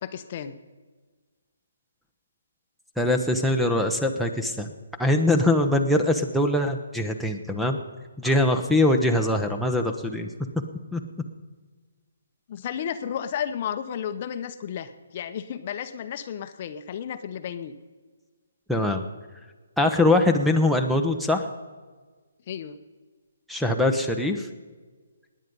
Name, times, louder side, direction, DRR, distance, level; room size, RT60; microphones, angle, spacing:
voice 1, 0.0-0.6 8.2-8.3 12.5-17.7 22.5-22.8, left 8 dB, 40° left, 10 dB, 0.8 m, -33 dB
voice 2, 3.0-4.7 5.0-7.8 8.2-10.3 10.9-11.0 18.7-19.0 19.8-21.5 23.5-24.5, left 1 dB, ahead, 5 dB, 0.9 m, -22 dB
18.5 x 9.8 x 5.4 m, 1.4 s
hypercardioid pair, 155°, 0 cm